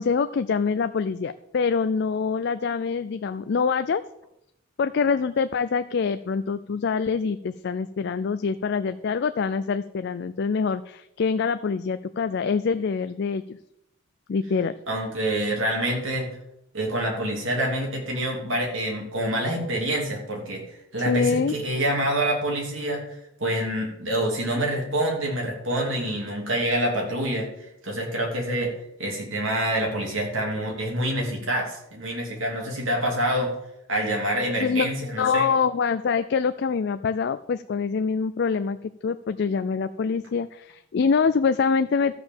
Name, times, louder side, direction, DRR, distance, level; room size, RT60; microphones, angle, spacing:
voice 1, 0.0-4.0 4.8-13.6 14.3-14.7 21.1-21.5 34.6-34.9 35.2-42.1, left 5 dB, 50° left, 11 dB, 0.4 m, -25 dB
voice 2, 14.9-16.3 16.7-20.6 20.9-27.5 27.8-28.7 29.0-33.5 33.9-35.5, right 1 dB, 65° right, 0 dB, 3.1 m, -26 dB
13.0 x 5.0 x 7.5 m, 0.81 s
head